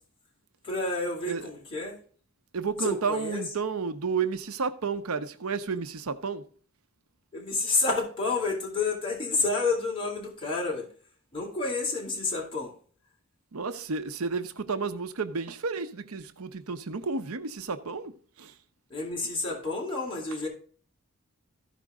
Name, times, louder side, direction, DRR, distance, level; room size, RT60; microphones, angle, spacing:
voice 1, 0.6-1.9 2.8-3.4 7.3-10.9 11.3-12.7 18.9-20.5, left 3 dB, 25° left, 3.6 m, -29 dB
voice 2, 2.5-6.4 13.5-18.1 18.4-18.5, right 5 dB, 90° right, 0.8 m, -31 dB
15.0 x 5.1 x 3.6 m
head